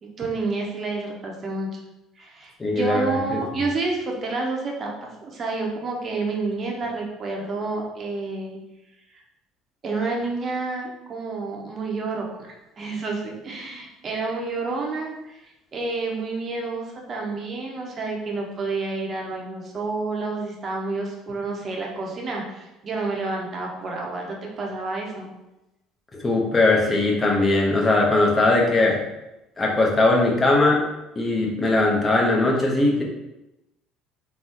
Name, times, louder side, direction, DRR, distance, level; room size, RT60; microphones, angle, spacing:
voice 1, 0.0-1.8 2.2-8.6 9.8-15.4 15.7-25.3, right 3 dB, 40° right, 0 dB, 0.8 m, -29 dB
voice 2, 2.6-3.4 26.2-29.0 29.6-30.8 31.2-33.0, left 2 dB, 25° left, -2 dB, 0.9 m, -20 dB
3.5 x 2.3 x 2.9 m, 0.95 s
hypercardioid pair, 60°, 0 cm